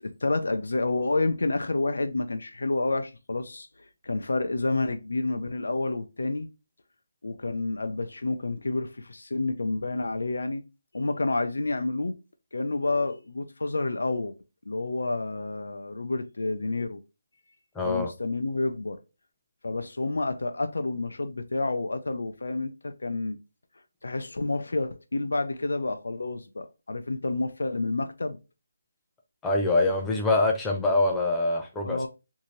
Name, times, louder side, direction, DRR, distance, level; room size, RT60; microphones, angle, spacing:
voice 1, 0.0-3.7 4.0-6.5 7.2-10.6 10.9-12.2 12.5-14.3 14.7-17.0 17.8-19.0 19.6-23.4 24.0-28.4 31.8-32.1, left 2 dB, 85° left, 0.5 m, -29 dB
voice 2, 17.8-18.1 29.4-32.0, left 2 dB, 5° left, 0.4 m, -24 dB
2.7 x 2.6 x 3.0 m
hypercardioid pair, 170°, 0 cm